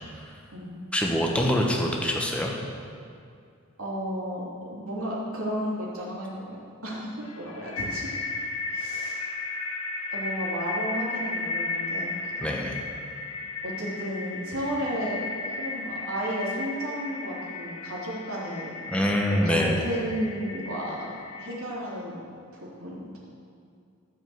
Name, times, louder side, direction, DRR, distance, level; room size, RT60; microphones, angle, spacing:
voice 1, 0.9-2.5 12.4-12.8 18.9-19.8, equal, 5° left, -1 dB, 1.1 m, -24 dB
voice 2, 3.8-8.1 8.7-9.2 10.1-12.7 13.6-18.7 19.4-21.1 21.4-22.3 22.5-23.2, equal, 75° right, -6 dB, 3.1 m, -33 dB
sound 1, 7.3-21.6, left 3 dB, 85° left, 1.3 m, -35 dB
14.0 x 5.4 x 7.9 m, 2.4 s
head